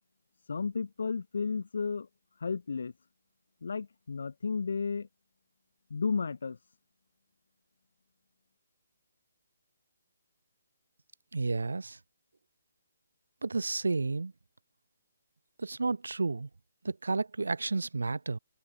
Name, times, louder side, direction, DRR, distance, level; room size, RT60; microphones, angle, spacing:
voice 1, 0.5-2.1 2.4-2.9 3.6-5.1 5.9-6.6, left 5 dB, 65° left, 0.9 m, -33 dB
voice 2, 11.3-12.0 13.4-14.3 15.6-16.5 16.8-18.4, right 3 dB, 75° right, 0.6 m, -31 dB
figure-of-eight pair, 145°, 0 cm